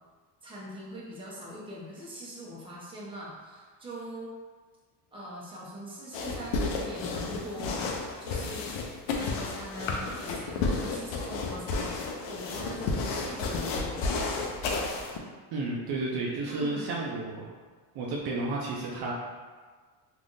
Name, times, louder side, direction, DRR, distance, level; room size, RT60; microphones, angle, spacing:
voice 1, 0.4-4.3 5.1-7.9 8.2-8.8 9.1-12.0 12.3-14.2 16.5-17.0, equal, 10° right, -6 dB, 0.8 m, -42 dB
sound 1, 6.1-15.2, left 3 dB, 65° left, 0.6 m, -32 dB
voice 2, 15.5-17.5 17.9-19.1, right 2 dB, 50° right, -3 dB, 0.6 m, -32 dB
3.3 x 2.6 x 2.6 m, 1.5 s
cardioid pair, 110°, 48 cm